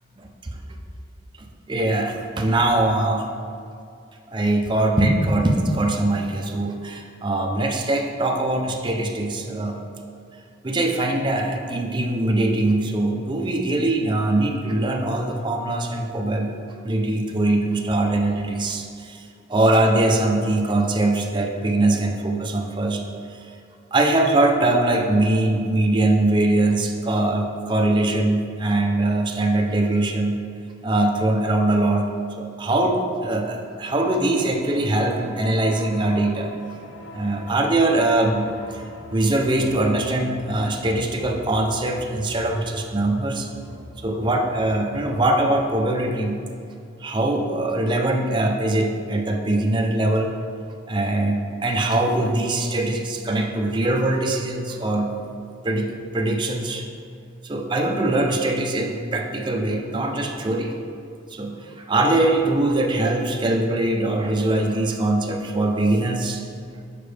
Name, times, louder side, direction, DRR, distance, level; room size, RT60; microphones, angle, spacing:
voice 1, 1.4-3.3 4.3-9.8 10.6-16.5 16.8-19.2 19.5-23.0 23.9-30.4 30.8-32.1 32.4-36.5 37.1-38.8 39.1-43.5 44.0-46.4 47.0-50.3 50.9-55.1 55.6-56.9 57.4-60.8 61.3-66.4, right 2 dB, 25° right, 2 dB, 0.5 m, -22 dB
sound 1, 33.9-46.1, left 2 dB, 85° left, 0.5 m, -43 dB
6.7 x 5.1 x 3.4 m, 2.4 s
head